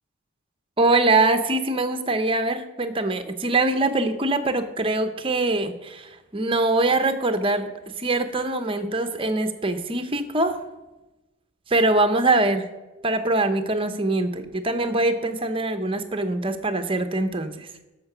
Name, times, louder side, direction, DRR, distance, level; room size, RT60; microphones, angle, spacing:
voice 1, 0.8-7.7 8.0-10.6 11.7-12.7 13.0-17.5, right 2 dB, 25° right, 8 dB, 0.8 m, -23 dB
13.5 x 5.8 x 6.0 m, 1.1 s
head